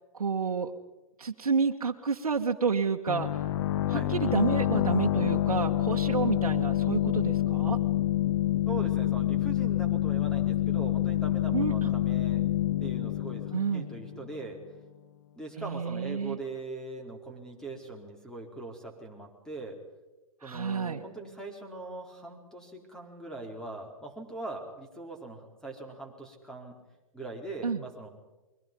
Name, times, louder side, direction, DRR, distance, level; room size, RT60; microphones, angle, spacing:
voice 1, 0.1-0.7 1.2-3.3 3.9-7.8 11.5-11.9 13.5-13.9 15.6-16.4 20.4-21.0 27.6-27.8, right 5 dB, 90° right, 1 dB, 1.5 m, -29 dB
sound 1, 3.1-14.5, left 13 dB, 50° left, 1.1 m, -27 dB
voice 2, 8.7-12.5 12.8-14.6 15.3-19.8 20.4-26.8 27.1-28.1, right 2 dB, 5° left, 2 dB, 4.3 m, -41 dB
29.5 x 23.0 x 5.4 m, 1.1 s
hypercardioid pair, 130°, 18 cm